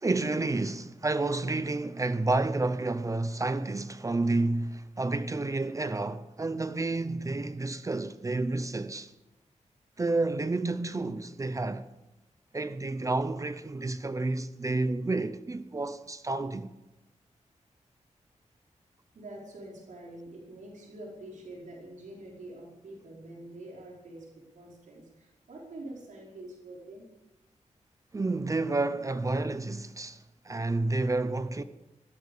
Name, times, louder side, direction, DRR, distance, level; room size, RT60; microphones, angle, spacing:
voice 1, 0.0-9.1 10.0-11.9 12.5-16.7 28.1-31.6, right 2 dB, 25° right, 0.7 m, -30 dB
voice 2, 19.1-27.1, right 1 dB, 90° right, 5.0 m, -46 dB
15.5 x 13.5 x 6.9 m
wide cardioid pair, 165°, 13 cm